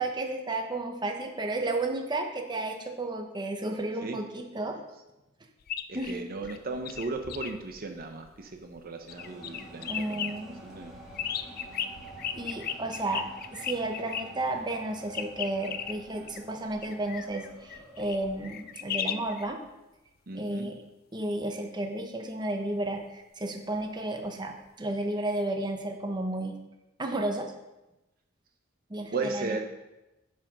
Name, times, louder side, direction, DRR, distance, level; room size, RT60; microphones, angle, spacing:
voice 1, 0.0-4.8 5.9-6.2 9.9-10.6 12.4-13.2 13.5-19.6 20.3-20.8 21.1-26.6 27.0-27.5 28.9-29.6, right 2 dB, 20° right, 3 dB, 0.9 m, -32 dB
sound 1, 5.6-8.8 9.1-10.3 10.8-14.2 15.1-19.5 25.3-25.4, left 9 dB, 50° left, 0.4 m, -36 dB
voice 2, 5.9-10.3 10.6-10.9 20.3-20.7 29.1-29.6, right 3 dB, 50° right, 4 dB, 0.8 m, -36 dB
sound 2, 9.1-18.7, right 2 dB, ahead, 2.7 m, -48 dB
9.2 x 5.1 x 6.0 m, 0.98 s
head